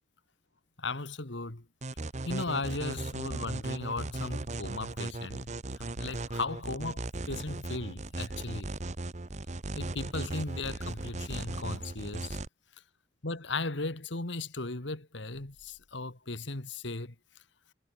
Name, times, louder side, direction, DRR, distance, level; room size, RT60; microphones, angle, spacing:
voice 1, 0.8-1.7 2.3-8.7 9.8-12.4 13.2-17.1, left 3 dB, 75° left, 2.2 m, -37 dB
sound 1, 1.8-12.5, right 2 dB, 40° right, 0.9 m, -37 dB
head